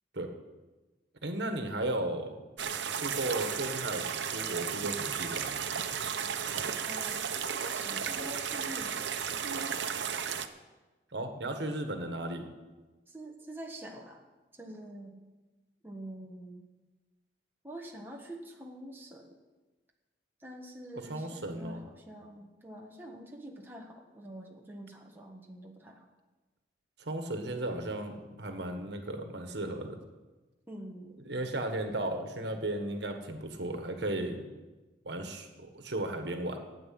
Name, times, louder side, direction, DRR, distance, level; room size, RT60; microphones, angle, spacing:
voice 1, 1.2-2.4 2.9-4.1 4.3-5.7 11.1-12.5 21.1-21.8 27.0-30.0 31.2-34.4 35.0-36.6, right 1 dB, 75° right, 5 dB, 1.6 m, -35 dB
sound 1, 2.6-10.5, right 7 dB, 90° right, 0.8 m, -34 dB
voice 2, 6.8-9.3 13.1-14.2 14.5-15.1 15.8-16.7 17.6-19.4 20.4-26.1 30.7-31.2, right 1 dB, 10° right, 0 dB, 1.4 m, -46 dB
12.5 x 9.1 x 7.7 m, 1.2 s
head